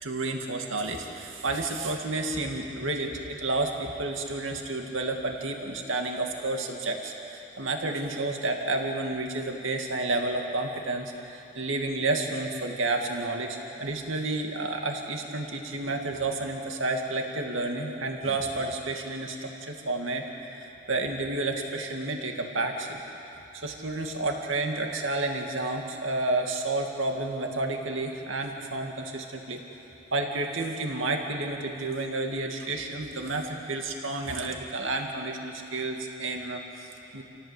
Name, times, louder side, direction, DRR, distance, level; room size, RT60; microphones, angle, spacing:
voice 1, 0.0-20.2 20.6-23.0 23.5-29.6 30.1-37.2, right 2 dB, 70° right, 2 dB, 2.3 m, -30 dB
28.5 x 17.5 x 8.3 m, 3.0 s
head